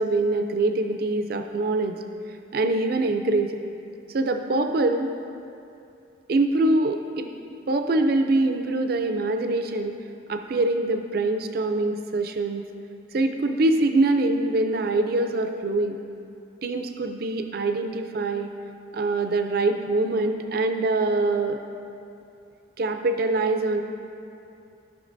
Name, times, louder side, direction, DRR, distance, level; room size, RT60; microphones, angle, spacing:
voice 1, 0.0-2.0 2.5-3.6 4.1-5.1 6.3-7.3 7.7-9.9 10.3-12.6 13.1-16.0 16.6-18.5 18.9-21.6 22.8-23.8, right 2 dB, 50° right, 6 dB, 0.4 m, -24 dB
15.0 x 5.7 x 2.6 m, 2.7 s
head